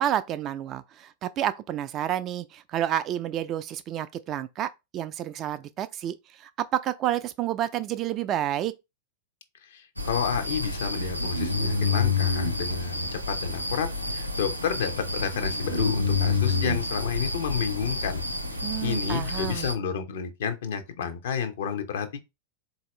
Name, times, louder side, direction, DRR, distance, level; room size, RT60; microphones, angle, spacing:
voice 1, 0.0-8.7 18.6-19.7, right 11 dB, 35° right, 0.4 m, -30 dB
voice 2, 9.6-18.2 18.8-22.2, left 7 dB, 60° left, 0.8 m, -30 dB
sound 1, 10.0-19.7, left 3 dB, 90° right, 0.6 m, -28 dB
4.1 x 2.7 x 3.1 m
figure-of-eight pair, 90°, 0 cm